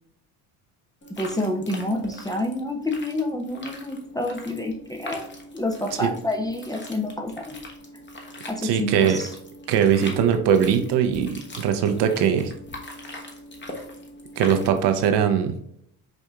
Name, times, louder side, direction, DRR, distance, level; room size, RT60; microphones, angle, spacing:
sound 1, 1.0-15.0, left 1 dB, 25° left, 1.0 m, -41 dB
voice 1, 1.2-5.3 5.5-7.6 8.5-9.3, left 1 dB, 10° left, 3 dB, 0.5 m, -28 dB
voice 2, 8.6-9.2 9.7-12.5 14.4-15.6, right 8 dB, 70° right, 7 dB, 0.7 m, -21 dB
4.8 x 2.6 x 2.3 m, 0.71 s
supercardioid pair, 70°, 43 cm